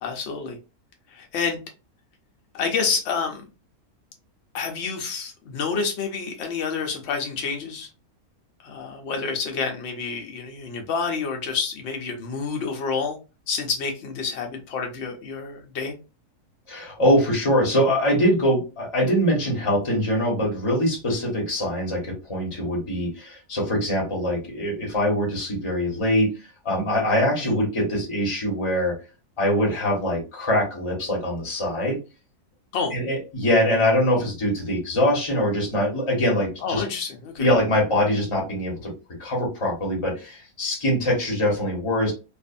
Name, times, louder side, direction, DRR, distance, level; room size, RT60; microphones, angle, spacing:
voice 1, 0.0-0.6 1.1-1.6 2.5-3.5 4.5-7.9 8.6-13.2 13.5-15.9 27.4-27.6 32.7-32.9 36.6-37.5, left 5 dB, 55° left, 3 dB, 0.9 m, -28 dB
voice 2, 16.7-26.3 26.6-28.9 29.4-32.0 32.9-36.8 37.4-38.9 39.2-42.1, equal, 20° left, -2 dB, 1.1 m, -23 dB
2.5 x 2.5 x 2.5 m, 0.30 s
omnidirectional pair, 1.7 m